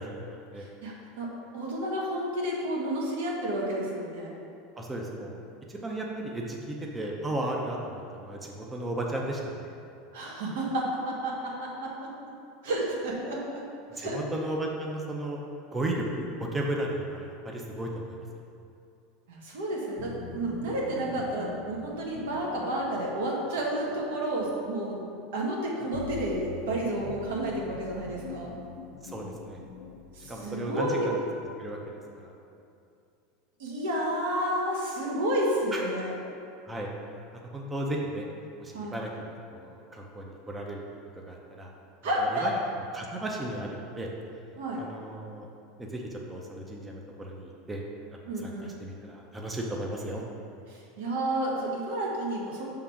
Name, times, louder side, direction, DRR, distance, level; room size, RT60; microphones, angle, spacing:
voice 1, 0.0-0.7 4.8-5.4 5.7-9.7 14.0-15.4 15.7-18.2 29.0-29.6 30.3-31.2 31.6-32.3 35.7-35.8 36.7-36.9 37.4-38.3 38.6-40.8 41.3-41.7 42.2-42.5 42.9-44.1 44.8-45.5 45.8-47.8 48.4-50.2, right 1 dB, 10° right, -1 dB, 0.5 m, -35 dB
voice 2, 0.8-4.3 10.1-11.9 12.6-13.4 13.9-14.2 19.3-25.0 25.3-28.5 30.2-31.1 33.6-36.1 38.7-39.0 42.0-42.5 44.6-44.8 48.3-48.7 50.7-52.7, right 1 dB, 85° right, -3 dB, 1.5 m, -31 dB
sound 1, 20.0-31.5, left 4 dB, 50° left, 0.5 m, -45 dB
6.1 x 3.8 x 5.7 m, 2.6 s
supercardioid pair, 165°, 0 cm